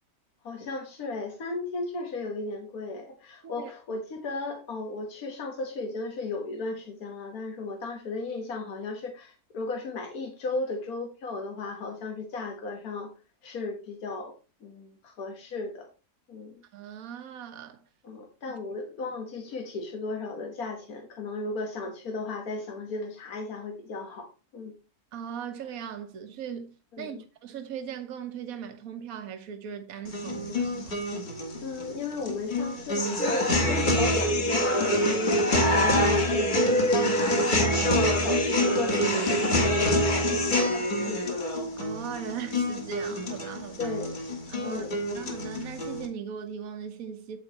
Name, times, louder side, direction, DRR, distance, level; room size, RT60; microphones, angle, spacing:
voice 1, 0.4-13.1 13.4-14.3 14.6-15.9 16.3-16.6 18.0-24.7 26.9-27.2 31.6-41.3 43.8-44.2 44.6-45.0, left 3 dB, 75° left, 1.8 m, -35 dB
voice 2, 3.4-4.0 16.7-17.8 25.1-31.0 41.8-44.0 44.5-44.9 45.1-47.4, right 8 dB, 70° right, 1.4 m, -39 dB
sound 1, 30.1-46.1, left 1 dB, 35° left, 1.6 m, -26 dB
8.8 x 8.2 x 2.9 m
omnidirectional pair, 1.6 m